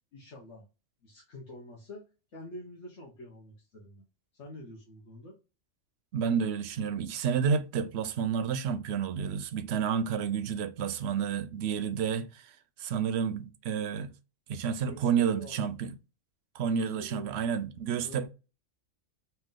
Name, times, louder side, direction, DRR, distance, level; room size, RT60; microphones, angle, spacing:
voice 1, 0.1-0.7 1.0-4.0 4.3-5.4 14.9-15.6 16.7-17.4 18.0-18.3, left 1 dB, 65° left, 1.3 m, -47 dB
voice 2, 6.1-12.5 12.8-14.1 14.5-15.9 16.5-18.3, right 7 dB, 65° right, 0.8 m, -30 dB
3.4 x 2.8 x 3.6 m
omnidirectional pair, 1.3 m